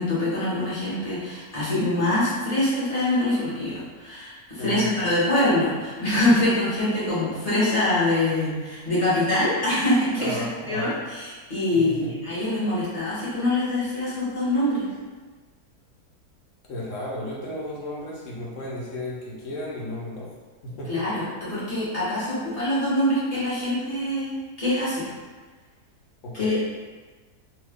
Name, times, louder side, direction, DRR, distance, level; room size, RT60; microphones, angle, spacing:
voice 1, 0.0-10.4 10.7-14.9 20.9-25.0 26.3-26.6, left 1 dB, 25° left, -10 dB, 1.0 m, -24 dB
voice 2, 4.6-4.9 10.2-10.9 11.7-12.1 16.7-20.3 20.6-21.0 26.2-26.6, left 1 dB, 55° left, -5 dB, 1.0 m, -34 dB
2.8 x 2.4 x 3.5 m, 1.4 s
omnidirectional pair, 1.7 m